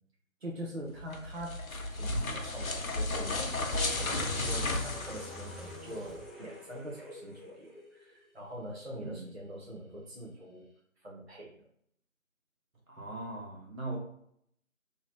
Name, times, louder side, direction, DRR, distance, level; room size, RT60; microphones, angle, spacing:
voice 1, 0.4-10.6 11.0-11.6, right 1 dB, 50° right, -3 dB, 0.6 m, -43 dB
sound 1, 1.0-6.0, left 2 dB, 75° left, 0.6 m, -34 dB
sound 2, 3.7-8.5 8.8-8.9, left 2 dB, ahead, 0.3 m, -46 dB
voice 2, 12.9-14.0, right 2 dB, 90° right, -2 dB, 1.2 m, -39 dB
2.7 x 2.0 x 3.1 m, 0.68 s
figure-of-eight pair, 175°, 41 cm